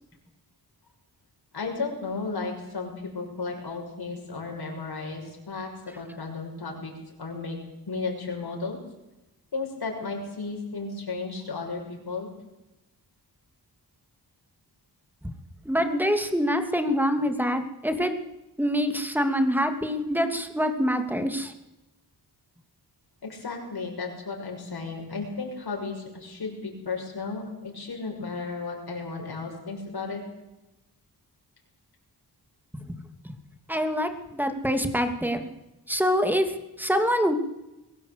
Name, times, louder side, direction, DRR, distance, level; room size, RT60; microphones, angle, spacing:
voice 1, 1.5-6.9 7.2-7.6 7.9-8.8 9.5-12.3 23.2-30.2, left 4 dB, 70° left, 1 dB, 6.5 m, -34 dB
voice 2, 15.6-18.1 18.6-21.5 32.7-33.0 33.2-33.4 33.7-35.5 35.9-37.3, equal, 5° right, 7 dB, 2.8 m, -25 dB
22.5 x 16.5 x 8.3 m, 0.96 s
wide cardioid pair, 95°, 40 cm